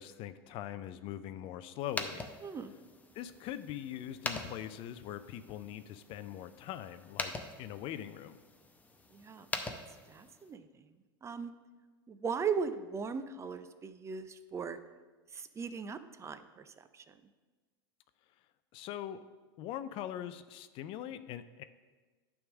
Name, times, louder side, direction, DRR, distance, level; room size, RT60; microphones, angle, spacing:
voice 1, 0.0-2.3 3.1-8.4 18.7-19.2 19.6-21.6, left 11 dB, 45° left, 12 dB, 0.4 m, -42 dB
sound 1, 1.8-10.5, left 2 dB, 10° left, 0.7 m, -44 dB
voice 2, 2.4-2.7 9.1-9.5 10.1-10.9 11.2-11.5 12.1-14.8 15.3-17.0, right 6 dB, 20° right, 11 dB, 0.5 m, -38 dB
9.4 x 3.6 x 6.2 m, 1.3 s
hypercardioid pair, 85°, 13 cm